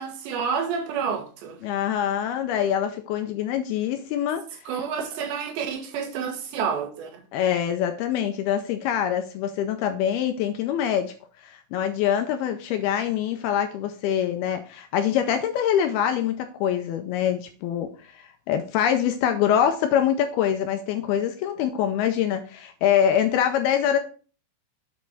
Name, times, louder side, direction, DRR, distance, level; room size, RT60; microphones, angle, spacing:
voice 1, 0.0-1.6 4.7-7.2, right 6 dB, 85° right, 3.6 m, -29 dB
voice 2, 1.6-4.4 7.3-11.1 11.4-24.0, left 9 dB, 85° left, 2.4 m, -24 dB
7.9 x 5.3 x 4.7 m
omnidirectional pair, 5.0 m